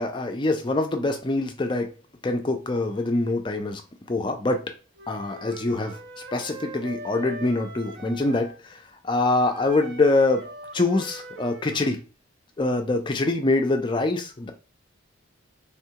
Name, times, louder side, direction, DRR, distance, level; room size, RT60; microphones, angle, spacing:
voice 1, 0.0-1.9 2.2-3.8 4.1-4.7 5.1-6.0 6.3-12.0 12.6-14.5, left 2 dB, 25° left, 0.4 m, -24 dB
Wind instrument woodwind instrument, 4.9-8.6 9.4-12.0, right 2 dB, 55° right, 0.5 m, -41 dB
3.5 x 2.3 x 2.8 m
head